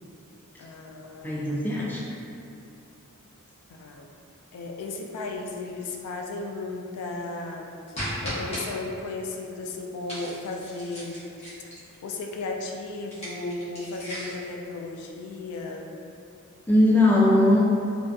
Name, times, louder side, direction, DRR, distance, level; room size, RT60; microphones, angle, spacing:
voice 1, 0.6-1.6 3.7-4.1 4.5-7.7 8.2-11.2 12.0-15.9, left 3 dB, 85° left, 2 dB, 0.3 m, -35 dB
voice 2, 1.2-2.0 16.7-17.6, left 1 dB, 10° left, -6 dB, 0.4 m, -19 dB
sound 1, 7.9-8.6 10.1-11.9 13.0-14.5, equal, 30° left, 0.8 m, -36 dB
2.5 x 2.3 x 2.3 m, 2.6 s
head